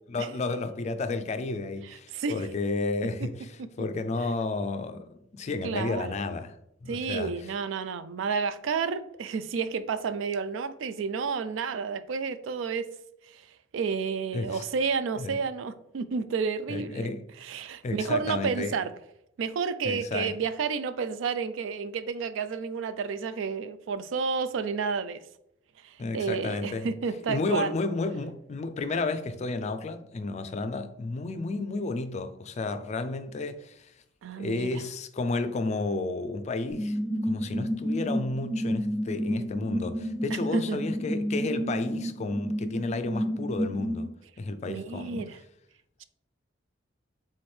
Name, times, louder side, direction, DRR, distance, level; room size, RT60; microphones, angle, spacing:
voice 1, 0.1-3.5 3.8-6.6 6.8-7.4 14.3-14.6 15.2-15.4 16.7-17.3 17.8-18.8 19.8-20.3 26.0-26.9 27.3-33.9 34.4-37.0 37.2-44.1 44.4-45.3, left 3 dB, 35° left, 0.3 m, -32 dB
voice 2, 2.1-2.5 3.6-3.7 5.6-6.1 6.9-12.9 13.3-13.4 13.7-17.1 17.4-18.9 19.4-25.2 25.8-27.7 34.2-34.8 40.5-40.8 44.7-45.4, right 5 dB, 75° right, 0.3 m, -31 dB
sound 1, 36.7-44.1, equal, 10° right, 1.4 m, -31 dB
4.3 x 3.6 x 3.2 m
head